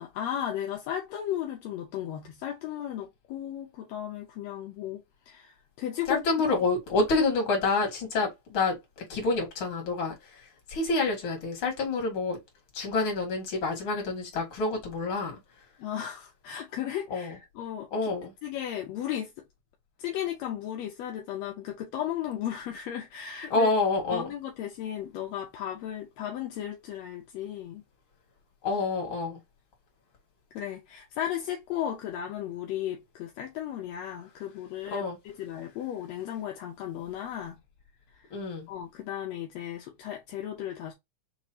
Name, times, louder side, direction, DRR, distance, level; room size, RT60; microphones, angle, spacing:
voice 1, 0.0-6.2 15.8-17.9 18.4-19.4 20.0-23.7 24.1-27.8 30.5-37.6 38.2-38.3 38.7-40.9, left 10 dB, 75° left, 1.6 m, -35 dB
voice 2, 6.1-12.4 12.7-15.4 17.1-17.4 17.9-18.3 23.5-24.3 28.6-29.4 34.9-35.2 38.3-38.7, left 3 dB, 45° left, 2.3 m, -28 dB
6.0 x 3.1 x 2.8 m
omnidirectional pair, 3.6 m